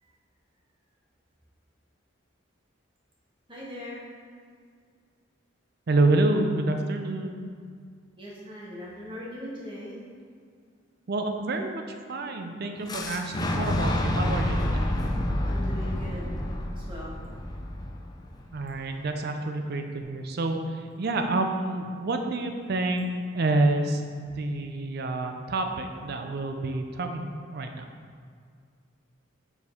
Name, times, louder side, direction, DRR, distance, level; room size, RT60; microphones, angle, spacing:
voice 1, 3.5-4.0 8.2-10.0 15.4-16.4 16.7-17.2, equal, 25° right, -6 dB, 1.5 m, -40 dB
voice 2, 5.9-7.5 11.1-14.9 18.5-27.9, right 2 dB, 55° right, 5 dB, 0.5 m, -28 dB
Fire / Explosion, 12.9-18.8, left 1 dB, 20° left, 0.5 m, -29 dB
6.7 x 4.6 x 3.6 m, 2.1 s
head